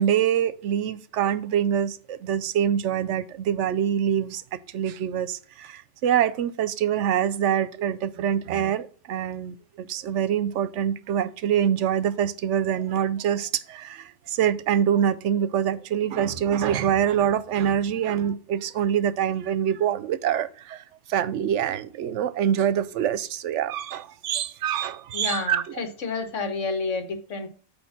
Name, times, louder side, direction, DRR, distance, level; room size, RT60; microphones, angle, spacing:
voice 1, 0.0-20.8 21.1-25.7, right 9 dB, 80° right, 0.9 m, -25 dB
voice 2, 25.1-27.5, left 4 dB, 80° left, 1.6 m, -30 dB
8.7 x 3.1 x 5.9 m
omnidirectional pair, 1.2 m